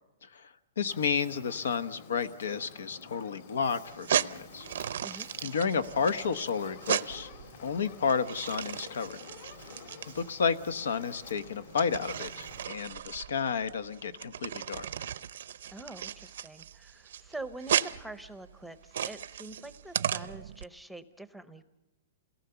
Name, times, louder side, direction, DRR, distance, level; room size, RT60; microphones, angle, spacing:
voice 1, 0.2-4.7 5.1-7.3 7.6-9.2 10.1-14.9, left 6 dB, 85° left, 13 dB, 1.1 m, -31 dB
Fire, 0.9-12.6, left 5 dB, 60° left, 3.9 m, -50 dB
sound 1, 3.9-20.6, right 9 dB, 70° right, 0.7 m, -35 dB
voice 2, 15.7-21.6, right 2 dB, ahead, 11 dB, 0.7 m, -45 dB
28.0 x 18.5 x 6.9 m, 1.0 s
hypercardioid pair, 155°, 0 cm